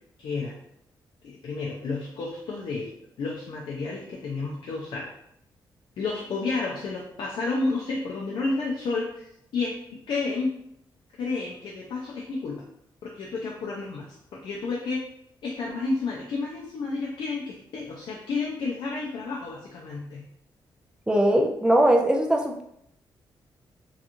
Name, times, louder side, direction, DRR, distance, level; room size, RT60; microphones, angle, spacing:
voice 1, 0.2-0.6 1.2-2.9 3.2-5.1 6.0-9.7 10.1-10.5 11.2-12.6 13.1-15.0 15.4-20.2, left 3 dB, 75° left, -3 dB, 0.5 m, -31 dB
voice 2, 21.1-22.6, right 1 dB, 10° right, 1 dB, 0.3 m, -20 dB
2.8 x 2.4 x 2.5 m, 0.74 s
cardioid pair, 105°, 8 cm